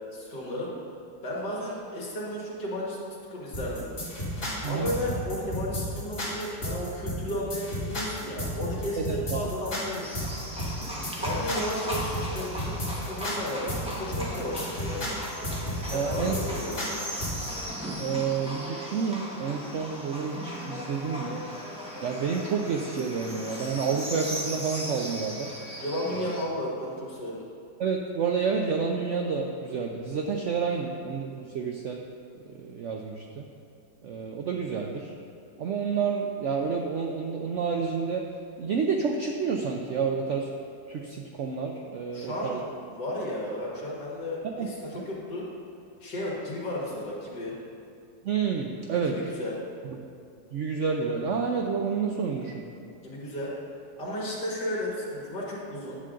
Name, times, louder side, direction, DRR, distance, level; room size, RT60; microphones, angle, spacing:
voice 1, 0.1-0.7 1.2-3.0 3.3-3.9 4.6-10.2 11.2-15.1 15.9-16.9 25.8-27.4 42.1-42.7 42.9-45.4 46.0-47.5 49.0-49.6 53.0-53.5 54.0-56.0, left 1 dB, 75° left, -5 dB, 2.5 m, -34 dB
sound 1, 3.5-17.5, left 1 dB, 50° left, 2.8 m, -33 dB
voice 2, 9.0-9.4 11.0-11.1 15.9-16.4 18.0-21.4 22.0-25.5 26.1-26.3 27.8-32.0 32.6-33.5 34.0-35.1 35.6-38.2 38.6-40.5 40.9-42.6 44.6-44.7 44.9-45.1 48.2-49.2 50.5-52.6, right 5 dB, 75° right, 2 dB, 0.7 m, -29 dB
Livestock farm animals working animals, 10.0-26.5, equal, 5° right, 1.1 m, -37 dB
10.0 x 7.6 x 3.8 m, 2.5 s
omnidirectional pair, 1.8 m